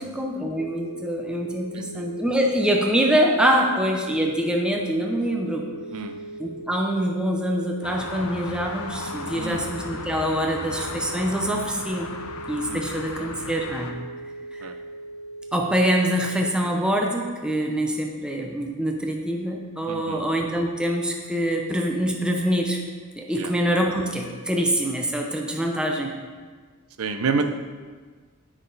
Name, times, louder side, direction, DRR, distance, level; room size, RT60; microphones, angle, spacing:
voice 1, 0.0-5.6 6.4-12.1 12.5-14.0 14.5-14.7 15.5-22.8 23.2-26.1, equal, 5° right, 1 dB, 0.6 m, -25 dB
sound 1, 0.6-16.4, right 2 dB, 35° left, 1.2 m, -39 dB
sound 2, 7.8-13.9, left 4 dB, 85° left, 0.7 m, -36 dB
voice 2, 12.7-13.0 14.6-14.7 19.9-20.2 23.4-23.5 27.0-27.4, right 4 dB, 70° right, 7 dB, 0.6 m, -29 dB
7.8 x 6.0 x 4.0 m, 1.5 s
head